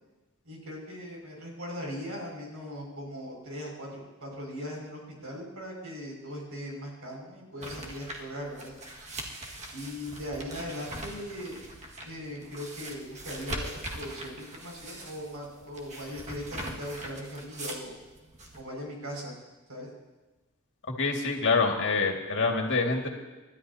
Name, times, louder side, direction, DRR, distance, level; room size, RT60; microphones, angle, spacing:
voice 1, 0.4-8.7 9.7-11.7 12.0-18.0 18.5-19.3 19.7-19.9, equal, 85° right, -1 dB, 6.1 m, -39 dB
sound 1, 7.6-18.6, right 1 dB, 30° right, 1.9 m, -41 dB
voice 2, 21.0-23.1, left 4 dB, 55° left, 1 dB, 2.2 m, -26 dB
30.0 x 13.0 x 2.8 m, 1.2 s
head